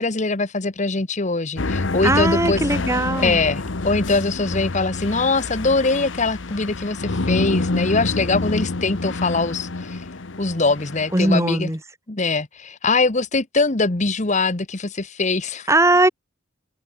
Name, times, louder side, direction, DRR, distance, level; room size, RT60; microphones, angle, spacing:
voice 1, 0.0-2.6 3.2-10.0 10.4-11.7 12.1-15.7, left 3 dB, 40° left, 1.3 m, -22 dB
sound 1, 1.6-11.4, left 2 dB, 80° left, 1.1 m, -27 dB
voice 2, 2.0-3.4 11.1-11.8 15.7-16.1, right 1 dB, 15° right, 2.5 m, -19 dB
head